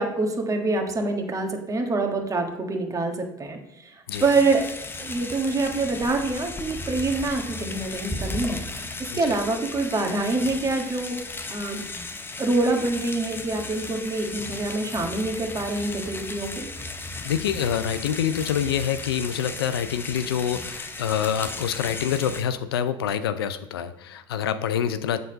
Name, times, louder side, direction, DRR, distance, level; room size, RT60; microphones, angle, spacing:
voice 1, 0.0-3.6 3.8-3.9 4.2-4.7 5.0-8.6 9.1-11.2 11.5-11.8 12.4-16.7, right 3 dB, 25° right, 3 dB, 1.5 m, -25 dB
sound 1, 4.1-22.4, left 2 dB, 15° left, 0.7 m, -36 dB
voice 2, 17.2-25.2, left 9 dB, 80° left, 12 dB, 0.4 m, -26 dB
7.5 x 4.0 x 5.0 m, 0.86 s
hypercardioid pair, 70°, 13 cm